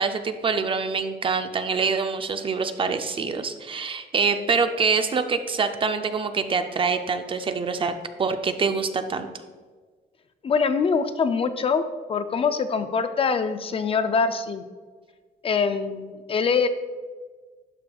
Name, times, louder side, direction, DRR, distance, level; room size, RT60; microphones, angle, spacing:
voice 1, 0.0-9.3, right 5 dB, 35° right, 8 dB, 0.4 m, -25 dB
voice 2, 10.4-11.8 12.1-14.6 15.4-16.7, left 5 dB, 35° left, 10 dB, 0.4 m, -24 dB
11.5 x 5.1 x 2.3 m, 1.4 s
cardioid pair, 135°, 16 cm